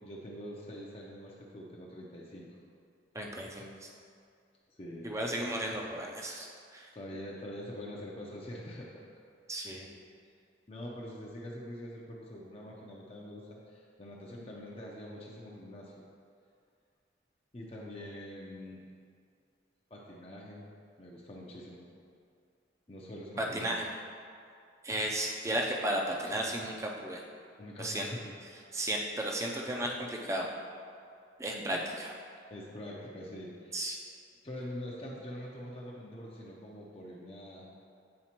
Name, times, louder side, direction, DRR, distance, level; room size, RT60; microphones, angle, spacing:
voice 1, 0.0-2.6 4.8-5.1 6.9-9.2 10.7-15.9 17.5-18.8 19.9-20.7 21.0-21.9 22.9-23.7 27.6-28.3 32.5-33.9 34.4-37.7, left 1 dB, 30° left, -4 dB, 0.6 m, -44 dB
voice 2, 3.1-3.9 5.0-6.9 9.5-9.9 23.4-23.8 24.8-27.2 27.8-28.1 28.7-30.5 31.4-32.1 33.7-33.9, right 1 dB, 15° right, 0 dB, 0.5 m, -34 dB
8.6 x 4.1 x 2.9 m, 2.3 s
head